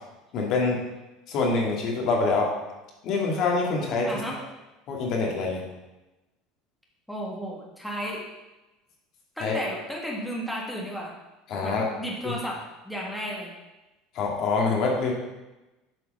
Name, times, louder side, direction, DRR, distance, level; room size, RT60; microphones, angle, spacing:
voice 1, 0.3-0.8 1.3-2.5 3.0-4.2 4.9-5.6 9.4-9.5 11.5-11.8 12.2-12.3 14.1-15.1, left 3 dB, 55° left, -1 dB, 2.1 m, -25 dB
voice 2, 4.0-4.4 7.1-8.2 9.4-11.1 11.6-12.6 12.8-13.5, equal, ahead, -3 dB, 1.6 m, -33 dB
7.9 x 4.6 x 5.3 m, 1.0 s
supercardioid pair, 110°, 0 cm